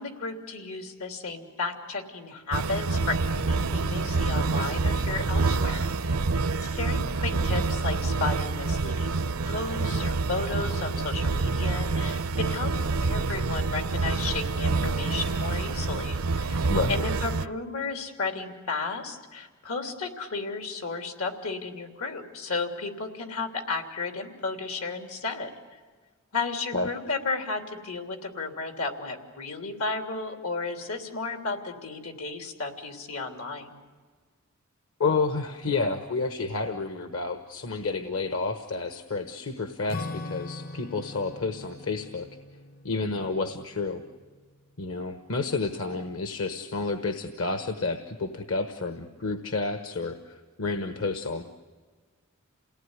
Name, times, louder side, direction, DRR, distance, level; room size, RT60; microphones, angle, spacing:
voice 1, 0.0-6.2 6.6-9.2 9.4-12.7 13.0-25.5 26.3-33.8 42.9-43.3, left 3 dB, 90° left, 5 dB, 3.2 m, -33 dB
sound 1, 2.5-17.5, right 3 dB, 80° right, 0.7 m, -27 dB
voice 2, 35.0-42.3 42.8-44.0 44.8-51.4, left 3 dB, 70° left, 7 dB, 1.2 m, -30 dB
Acoustic guitar / Strum, 39.9-44.7, left 2 dB, 45° left, 0.7 m, -41 dB
28.5 x 18.0 x 9.8 m, 1.5 s
head